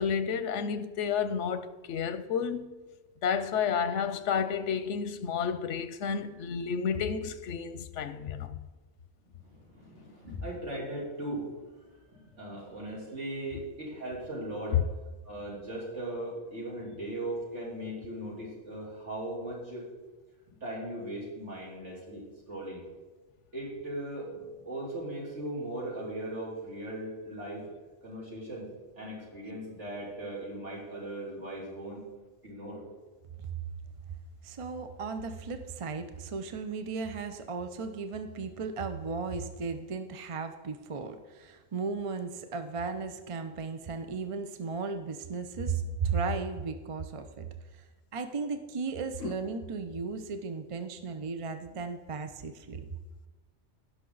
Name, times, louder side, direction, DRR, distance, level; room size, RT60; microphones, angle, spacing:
voice 1, 0.0-2.7 3.2-8.6 14.7-14.8 49.2-49.3, left 7 dB, 85° left, 1.0 m, -31 dB
voice 2, 9.4-14.8 15.3-19.9 20.6-22.2 22.5-22.8 23.5-27.7 28.0-28.7 29.0-32.0 32.4-32.8, right 1 dB, 80° right, 3.4 m, -38 dB
voice 3, 34.4-47.5 48.1-52.8, right 4 dB, 35° right, 0.5 m, -35 dB
17.0 x 5.8 x 3.9 m
omnidirectional pair, 1.2 m